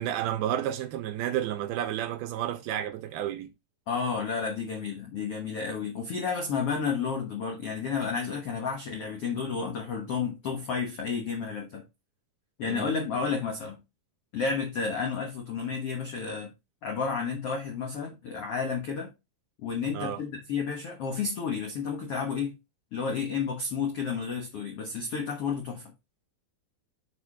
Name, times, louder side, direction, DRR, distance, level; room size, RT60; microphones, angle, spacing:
voice 1, 0.0-3.5 12.7-13.4 19.9-20.2, right 11 dB, 80° right, 2.4 m, -31 dB
voice 2, 3.9-11.9 12.6-13.8 14.3-16.5 16.8-19.1 19.6-22.5 22.9-25.9, left 5 dB, 85° left, 1.3 m, -31 dB
6.6 x 5.1 x 4.9 m
omnidirectional pair, 4.8 m